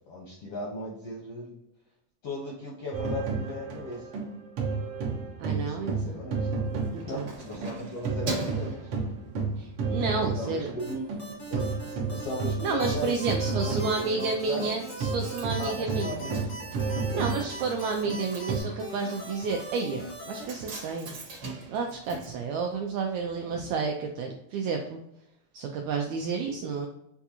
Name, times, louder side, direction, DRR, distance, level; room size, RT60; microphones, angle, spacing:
voice 1, 0.1-1.5 2.2-4.2 5.6-6.5 7.0-8.9 10.2-13.2 13.5-14.7 15.6-16.7 17.1-17.4 23.3-23.5, left 1 dB, 75° left, -2 dB, 1.3 m, -37 dB
sound 1, 2.9-7.8 8.0-18.6, right 4 dB, 65° right, 1.5 m, -31 dB
voice 2, 5.4-6.2 6.9-7.3 9.6-10.7 12.6-16.3 17.1-21.1 21.7-25.0 25.5-26.9, right 4 dB, 85° right, 2 dB, 1.6 m, -31 dB
Keys jangling, 6.7-9.7 10.2-10.4 10.8-11.5 11.7-11.8 12.1-12.2 12.4-23.2 23.5-23.6, right 2 dB, 50° right, 1.2 m, -42 dB
sound 2, 10.8-20.4, right 1 dB, 50° left, 0.7 m, -41 dB
6.8 x 2.3 x 2.8 m, 0.81 s
omnidirectional pair, 3.7 m